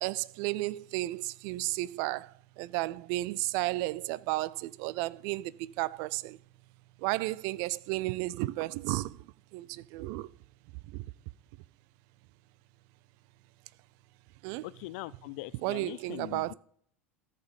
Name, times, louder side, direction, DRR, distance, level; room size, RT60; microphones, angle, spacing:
voice 1, 0.0-2.3 2.6-6.4 7.0-9.1 9.5-10.3 10.9-11.0 14.4-14.6 15.6-16.5, right 19 dB, 55° right, 0.4 m, -33 dB
voice 2, 14.6-16.5, left 20 dB, 60° left, 0.4 m, -41 dB
13.5 x 6.8 x 5.3 m
hypercardioid pair, 85°, 7 cm